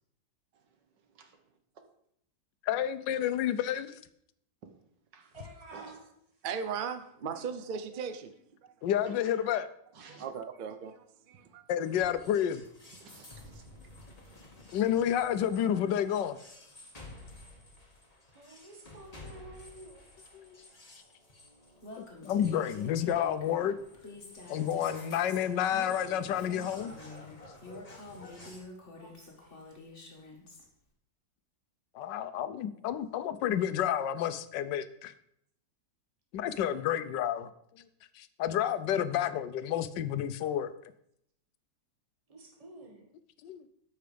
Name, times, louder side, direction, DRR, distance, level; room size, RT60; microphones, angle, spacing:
voice 1, 0.5-1.3 2.8-2.9 4.6-4.7 5.1-5.4 5.7-6.1 7.3-7.4 8.9-9.6 9.9-10.3 11.3-11.6 13.0-13.9, right 5 dB, 70° right, 6 dB, 1.8 m, -54 dB
voice 2, 2.7-4.0 8.8-9.7 11.7-12.6 14.7-16.4 20.3-20.6 22.0-23.8 24.5-26.9 31.9-35.1 36.3-37.5 38.2-40.7 43.4-43.6, left 10 dB, 75° left, 13 dB, 1.3 m, -30 dB
voice 3, 5.3-6.0 18.3-20.1 29.0-29.8 36.4-37.4 42.3-43.1, right 2 dB, 20° right, 1 dB, 1.8 m, -51 dB
voice 4, 6.4-8.3 10.1-11.6, right 6 dB, 50° right, 9 dB, 0.6 m, -37 dB
sound 1, 11.8-28.6, left 1 dB, 20° left, 2.0 m, -52 dB
Female speech woman speaking, 21.8-30.6, left 2 dB, 40° left, 2.1 m, -48 dB
13.0 x 5.7 x 5.1 m, 0.72 s
omnidirectional pair, 2.0 m